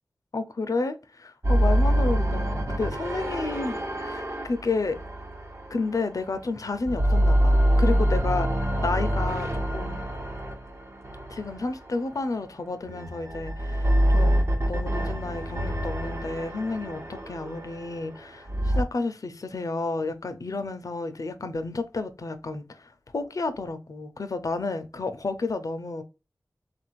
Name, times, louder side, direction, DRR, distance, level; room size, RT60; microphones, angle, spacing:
voice 1, 0.3-5.0 5.7-8.5 8.8-10.0 11.3-26.0, left 3 dB, 65° left, 0.6 m, -31 dB
sound 1, 1.4-6.4 6.7-12.1 12.8-18.8, equal, 45° right, 1.0 m, -26 dB
3.8 x 2.5 x 4.6 m
wide cardioid pair, 70°, 6 cm